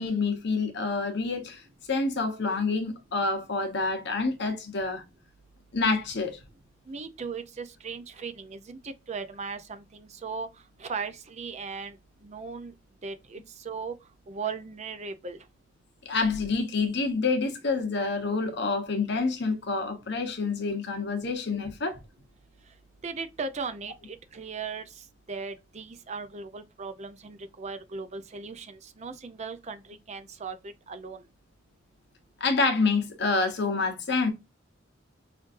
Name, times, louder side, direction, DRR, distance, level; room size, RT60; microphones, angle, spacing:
voice 1, 0.0-1.6 1.9-5.0 5.7-6.4 16.0-22.0 32.4-34.3, left 4 dB, 60° left, 1.0 m, -27 dB
voice 2, 6.9-10.5 10.8-12.0 12.2-12.7 13.0-13.9 14.3-15.4 23.0-24.9 25.3-31.2, right 5 dB, 35° right, 0.5 m, -37 dB
5.2 x 2.6 x 2.5 m
head